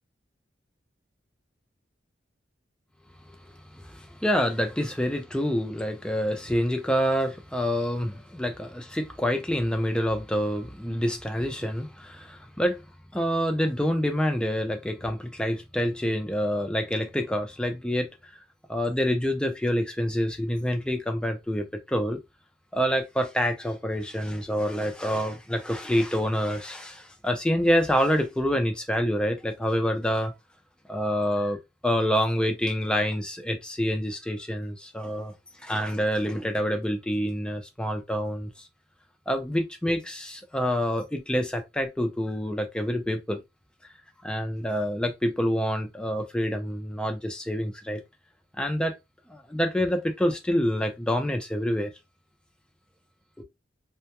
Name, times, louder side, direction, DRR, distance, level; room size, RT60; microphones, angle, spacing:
voice 1, 3.7-12.8 13.1-18.1 18.7-22.2 22.7-30.3 30.9-35.3 35.6-38.5 39.3-43.4 44.2-48.0 48.6-49.0 49.3-51.9 53.4-53.5, equal, 5° left, 0.4 m, -27 dB
2.2 x 2.1 x 2.9 m
head